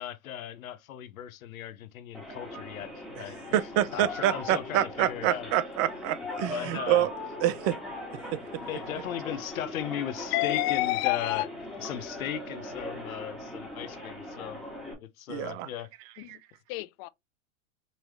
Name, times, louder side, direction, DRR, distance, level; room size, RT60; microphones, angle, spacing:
voice 1, 0.0-5.5 6.4-7.1 8.6-11.5 11.8-14.6 14.9-15.9, left 10 dB, 85° left, 1.0 m, -37 dB
sound 1, 2.1-14.9, left 1 dB, ahead, 2.0 m, -40 dB
voice 2, 3.5-7.1 7.4-7.8 8.3-8.4 15.3-15.7, right 12 dB, 35° right, 0.5 m, -27 dB
voice 3, 10.3-11.5 16.2-16.4 16.7-17.1, left 19 dB, 45° left, 0.6 m, -28 dB
5.4 x 3.1 x 3.1 m
hypercardioid pair, 120°, 41 cm